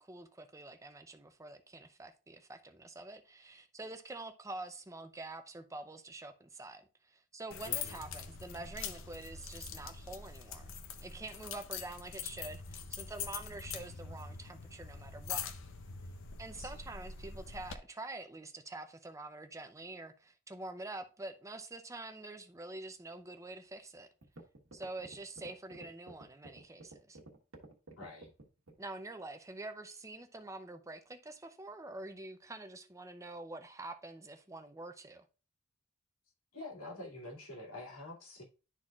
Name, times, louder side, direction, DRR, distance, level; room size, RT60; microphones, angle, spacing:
voice 1, 0.0-10.7 11.0-15.5 16.4-24.1 24.7-27.2 28.8-35.3, right 2 dB, 15° right, 0.6 m, -46 dB
sound 1, 7.5-17.8, left 6 dB, 65° left, 0.7 m, -43 dB
voice 2, 7.6-8.0 16.5-16.8 28.0-28.3 36.5-38.4, left 2 dB, 80° left, 2.5 m, -47 dB
sound 2, 23.8-23.9 24.2-28.9, right 2 dB, 75° right, 1.4 m, -52 dB
11.5 x 4.1 x 2.4 m
head